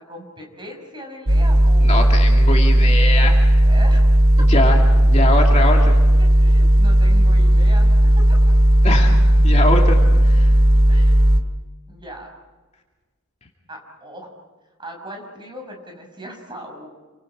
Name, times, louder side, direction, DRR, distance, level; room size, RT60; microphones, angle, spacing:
voice 1, 0.0-2.1 3.6-4.0 5.7-5.9 6.2-8.6 10.1-10.2 10.5-10.6 10.9-11.3 11.9-12.3 13.7-14.3 14.8-16.9, right 1 dB, 20° right, 2 dB, 6.0 m, -38 dB
sound 1, 1.3-11.4, right 1 dB, 75° right, 1.9 m, -14 dB
voice 2, 1.8-3.6 4.4-4.8 5.0-6.0 8.8-10.0 10.2-10.5, left 2 dB, 30° left, 0 dB, 2.6 m, -23 dB
29.0 x 26.0 x 4.9 m, 1.3 s
head